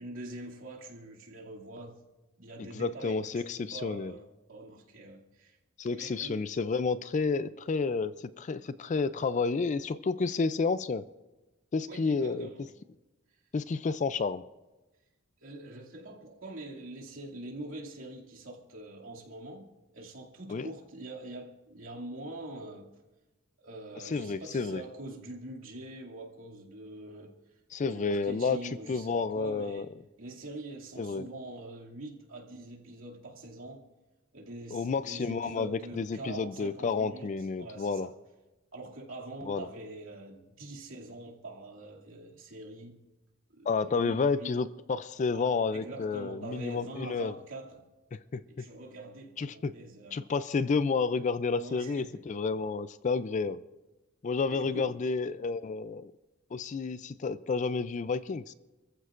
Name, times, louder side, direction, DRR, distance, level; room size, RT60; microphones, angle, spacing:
voice 1, 0.0-2.0 2.4-5.6 5.9-6.4 11.9-12.7 15.4-22.9 23.6-27.3 27.8-29.9 30.2-33.8 34.3-38.1 38.7-43.0 43.5-44.6 45.3-47.9 48.5-50.3 51.6-52.2 54.5-54.9, right 2 dB, 80° right, 2.5 m, -44 dB
voice 2, 2.6-4.1 5.8-11.0 11.7-12.5 13.5-14.4 20.5-20.7 24.0-24.8 27.7-28.6 28.9-29.9 31.0-31.2 34.7-38.1 39.5-39.7 43.7-47.3 48.3-48.6 49.4-49.7 50.1-53.6 54.2-56.1 56.5-58.5, left 4 dB, 35° left, 0.4 m, -30 dB
28.0 x 14.5 x 2.5 m
head